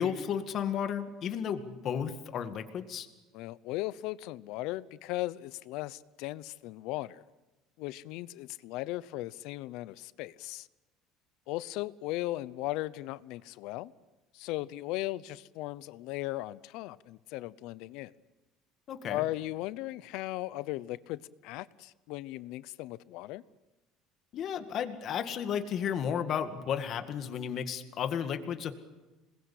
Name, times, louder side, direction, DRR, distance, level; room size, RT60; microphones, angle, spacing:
voice 1, 0.0-3.1 18.9-19.3 24.3-28.7, left 8 dB, 45° left, 2.0 m, -33 dB
voice 2, 3.3-7.2 7.8-10.7 11.5-13.9 14.3-18.1 19.1-23.4, left 17 dB, 70° left, 0.8 m, -37 dB
27.0 x 21.0 x 8.5 m
cardioid pair, 145°, 0 cm